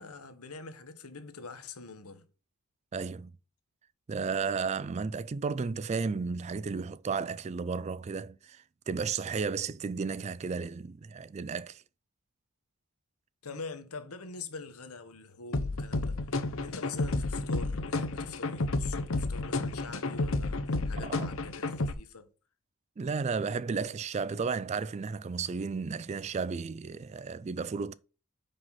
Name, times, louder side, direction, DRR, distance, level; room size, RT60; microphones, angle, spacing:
voice 1, 0.0-2.2 13.4-16.2 16.6-22.3, left 4 dB, 90° left, 1.2 m, -44 dB
voice 2, 2.9-3.3 4.1-11.8 21.0-21.3 23.0-27.9, right 5 dB, 30° right, 0.3 m, -33 dB
sound 1, 15.5-21.9, left 2 dB, 65° left, 0.8 m, -31 dB
5.8 x 5.3 x 5.5 m
head